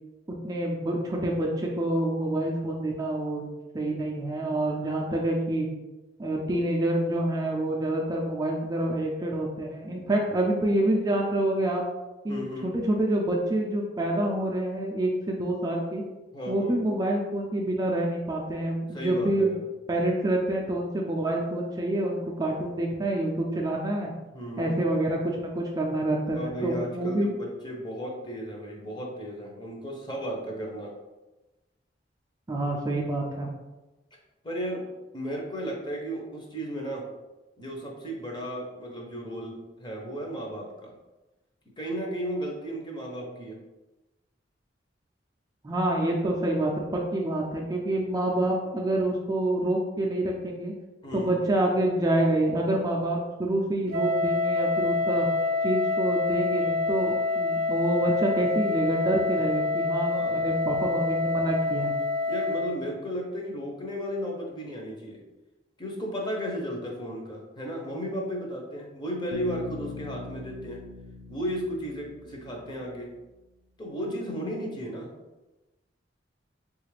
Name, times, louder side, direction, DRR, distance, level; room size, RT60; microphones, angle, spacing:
voice 1, 0.4-5.7 6.2-11.8 12.2-16.0 16.5-19.5 19.9-24.1 24.6-27.3 32.5-33.5 45.6-50.7 51.1-55.3 55.6-61.9, right 1 dB, 20° right, -1 dB, 0.4 m, -27 dB
voice 2, 12.3-12.7 16.3-16.8 18.9-19.6 24.3-24.8 26.3-30.9 34.4-34.9 35.1-37.1 37.6-40.9 41.8-43.6 51.0-51.4 60.0-60.5 62.3-65.2 65.8-70.9 71.3-73.2 73.8-75.1, equal, 25° left, -1 dB, 0.7 m, -34 dB
Wind instrument woodwind instrument, 53.9-62.8, left 3 dB, 55° right, 0.7 m, -27 dB
Bass guitar, 69.3-73.0, left 4 dB, 55° left, 0.3 m, -42 dB
3.7 x 2.4 x 3.2 m, 1.1 s
head